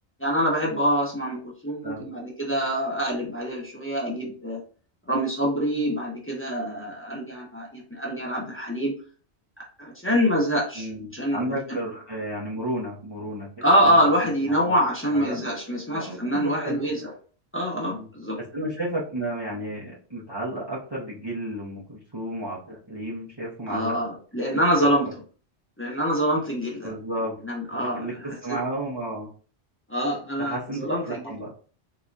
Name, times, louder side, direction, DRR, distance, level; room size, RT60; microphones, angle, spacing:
voice 1, 0.2-4.6 5.1-8.9 9.8-11.6 13.6-17.1 17.5-18.4 23.7-25.1 25.8-26.9 27.4-28.6 29.9-31.3, equal, 10° left, -4 dB, 1.1 m, -25 dB
voice 2, 10.7-14.0 14.4-14.8 15.1-15.5 15.9-16.9 17.9-18.1 18.5-24.0 24.8-24.9 26.8-27.4 27.9-29.3 30.4-31.5, right 1 dB, 25° right, -5 dB, 0.8 m, -32 dB
4.0 x 2.8 x 2.4 m, 0.40 s
omnidirectional pair, 1.1 m